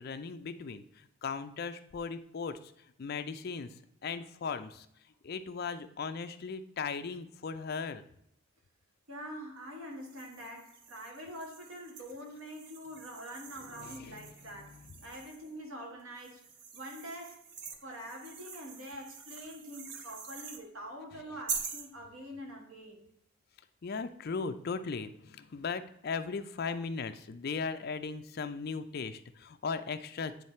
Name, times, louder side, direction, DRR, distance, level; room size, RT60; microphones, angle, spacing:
voice 1, 0.0-2.7 3.0-3.7 4.0-4.9 5.2-8.0 13.7-15.0 23.8-30.4, left 5 dB, 45° left, 9 dB, 0.4 m, -38 dB
voice 2, 9.1-16.4 16.7-17.5 17.8-23.0, equal, 70° right, 0 dB, 1.4 m, -45 dB
sound 1, 10.0-15.5 16.2-20.6 21.5-21.9, right 6 dB, 50° right, 0.7 m, -45 dB
9.2 x 3.2 x 4.3 m, 0.73 s
head